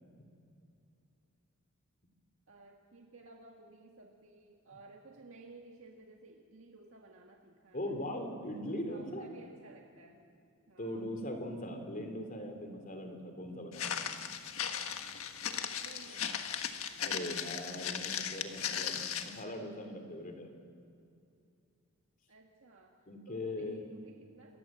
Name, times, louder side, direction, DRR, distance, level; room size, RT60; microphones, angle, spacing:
voice 1, 2.5-8.1 8.5-10.3 10.7-11.1 15.5-16.6 22.3-23.0 23.3-24.6, right 2 dB, 70° right, 1 dB, 1.8 m, -56 dB
voice 2, 7.7-9.3 10.8-14.1 17.0-20.5 23.1-23.8, left 1 dB, 40° left, 5 dB, 3.5 m, -40 dB
Walk footsteps, 13.7-19.4, left 8 dB, 75° left, 1.5 m, -37 dB
28.0 x 23.5 x 7.6 m, 2.5 s
head